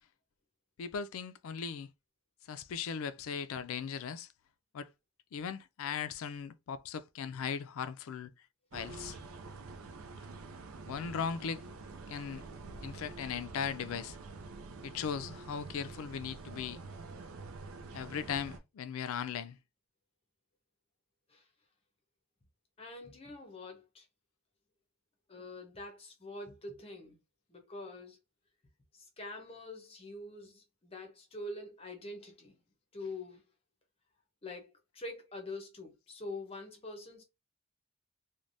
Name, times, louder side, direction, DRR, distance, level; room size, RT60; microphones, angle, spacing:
voice 1, 0.8-1.9 2.5-4.3 4.7-4.9 5.3-8.3 8.7-9.2 10.9-11.6 12.1-12.4 12.8-14.2 14.8-16.8 17.9-19.6, left 7 dB, 80° left, 0.4 m, -38 dB
sound 1, 8.7-18.6, right 3 dB, 80° right, 0.5 m, -47 dB
voice 2, 22.8-24.1 25.3-27.2 27.5-28.2 28.9-32.6 32.9-33.4 34.4-37.2, left 2 dB, 25° left, 0.7 m, -45 dB
3.2 x 2.2 x 2.5 m
head